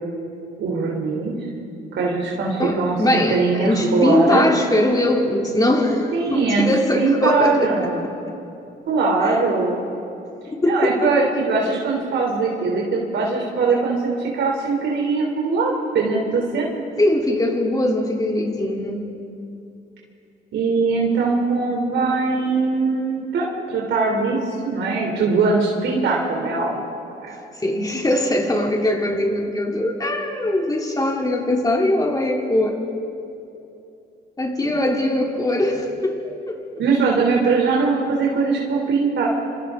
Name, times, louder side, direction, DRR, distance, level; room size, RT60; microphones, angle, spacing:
voice 1, 0.6-1.3 2.0-4.4 6.1-8.0 8.9-9.8 10.6-16.8 20.5-24.4 24.6-26.8 27.2-27.4 34.7-34.9 36.8-39.3, right 4 dB, 70° right, -2 dB, 3.3 m, -21 dB
voice 2, 2.6-7.7 9.2-9.3 10.5-11.1 17.0-19.1 27.6-32.8 34.4-36.8, left 1 dB, 20° left, 0 dB, 3.2 m, -21 dB
26.5 x 26.0 x 3.8 m, 2.7 s
cardioid pair, 90°, 20 cm